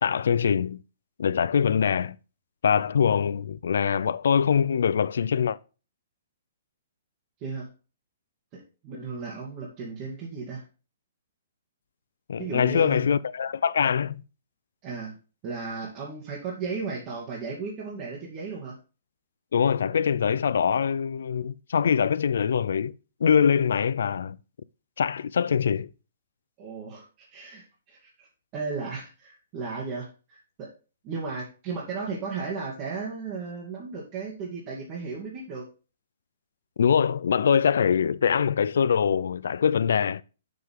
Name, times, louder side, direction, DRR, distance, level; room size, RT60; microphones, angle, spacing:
voice 1, 0.0-0.8 1.2-2.2 2.6-5.6 12.3-14.2 19.5-22.9 23.2-24.4 25.0-25.9 36.8-40.2, left 7 dB, 75° left, 0.5 m, -23 dB
voice 2, 8.5-10.7 12.4-13.1 14.8-15.1 15.4-18.8 26.6-28.3 28.5-30.7 31.0-35.7, right 4 dB, 30° right, 2.2 m, -35 dB
6.9 x 6.6 x 3.8 m
hypercardioid pair, 155°, 0 cm